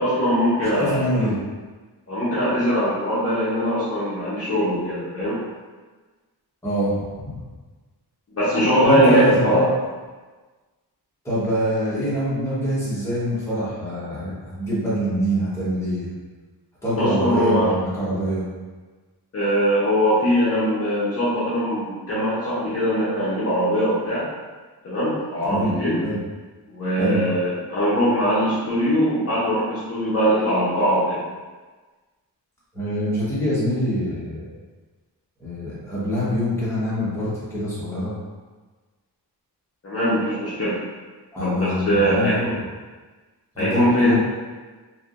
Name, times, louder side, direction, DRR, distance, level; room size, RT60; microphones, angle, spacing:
voice 1, 0.0-1.0 2.1-5.4 8.3-9.6 17.0-17.7 19.3-24.3 24.8-26.0 26.7-31.2 39.8-40.8 41.4-42.5 43.6-44.2, equal, 35° left, -10 dB, 0.7 m, -21 dB
voice 2, 0.7-1.4 6.6-7.3 8.8-9.7 11.2-16.1 16.8-18.4 25.4-25.8 26.0-26.2 27.0-27.2 32.7-34.4 35.4-38.2 41.3-42.7 43.5-44.2, equal, 5° left, -11 dB, 1.0 m, -24 dB
3.3 x 2.6 x 2.4 m, 1.3 s
wide cardioid pair, 170°, 41 cm